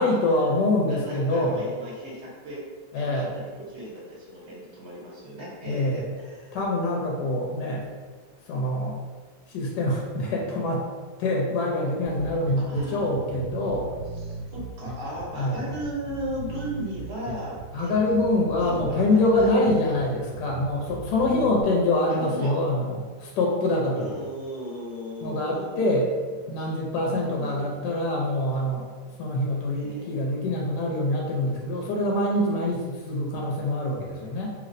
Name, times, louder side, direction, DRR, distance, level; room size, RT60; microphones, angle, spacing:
voice 1, 0.0-1.6 2.9-3.4 5.6-6.0 6.5-7.9 8.5-9.0 9.5-10.9 11.2-13.9 15.3-15.6 17.7-24.2 25.2-26.1 26.5-28.9 29.2-34.5, left 1 dB, 70° left, -2 dB, 1.1 m, -25 dB
voice 2, 0.8-2.6 2.9-6.5 12.6-13.1 14.1-18.1 18.6-19.9 22.0-22.6 23.9-26.0 26.6-26.7 27.2-27.8 29.7-30.2, equal, 55° right, -4 dB, 0.7 m, -37 dB
Bass guitar, 12.0-21.6, right 3 dB, 70° right, 1.1 m, -38 dB
3.0 x 2.9 x 2.5 m, 1.5 s
omnidirectional pair, 2.0 m